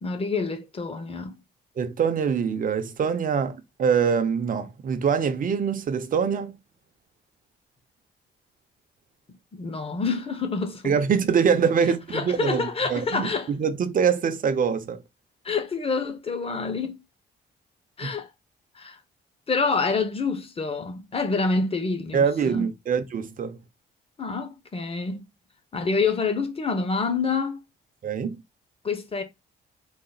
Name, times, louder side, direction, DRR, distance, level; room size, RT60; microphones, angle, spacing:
voice 1, 0.0-1.4 9.5-10.9 12.1-13.5 15.4-17.0 18.0-18.3 18.7-19.0 19.5-22.7 24.2-25.3 25.7-27.6 28.8-29.2, left 4 dB, 30° left, 1.0 m, -27 dB
voice 2, 1.8-6.5 10.8-15.0 18.0-18.1 22.1-23.6 28.0-28.4, right 6 dB, 45° right, 0.6 m, -24 dB
4.0 x 2.0 x 3.9 m
cardioid pair, 90°, 20 cm